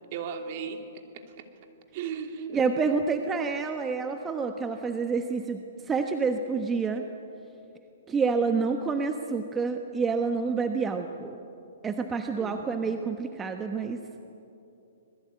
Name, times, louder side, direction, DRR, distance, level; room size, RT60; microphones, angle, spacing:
voice 1, 0.1-1.5 1.9-2.6 12.4-12.9, right 6 dB, 45° right, 5 dB, 2.8 m, -37 dB
voice 2, 2.5-7.1 8.1-11.4 11.8-14.0, right 4 dB, 15° right, 5 dB, 1.1 m, -28 dB
26.0 x 20.5 x 9.5 m, 2.8 s
hypercardioid pair, 145°, 0 cm